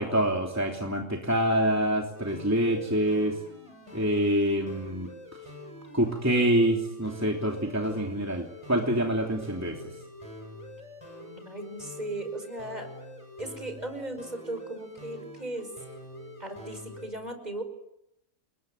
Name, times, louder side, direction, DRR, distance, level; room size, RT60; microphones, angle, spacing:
voice 1, 0.0-3.4 3.9-5.1 5.9-9.7, right 1 dB, 10° right, 1 dB, 3.1 m, -26 dB
sound 1, 2.1-17.1, left 1 dB, 25° left, 8.2 m, -45 dB
voice 2, 11.2-12.9 13.4-15.7 16.4-17.6, right 1 dB, 30° right, 7 dB, 5.6 m, -37 dB
29.5 x 22.0 x 9.3 m, 0.81 s
omnidirectional pair, 1.3 m